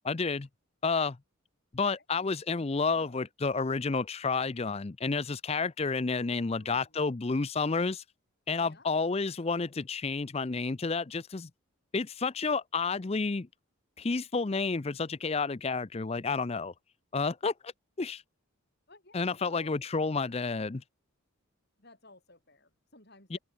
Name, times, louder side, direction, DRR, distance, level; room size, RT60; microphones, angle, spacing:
voice 1, 0.0-0.5 0.8-1.2 1.7-8.0 8.5-11.5 11.9-13.5 14.0-16.7 17.1-17.7 18.0-18.2 19.1-20.8 23.3-23.4, left 4 dB, 30° left, 0.5 m, -30 dB
voice 2, 2.9-3.3 6.3-7.0 8.6-8.9 18.9-19.8 21.8-23.4, left 2 dB, 50° left, 7.3 m, -55 dB
head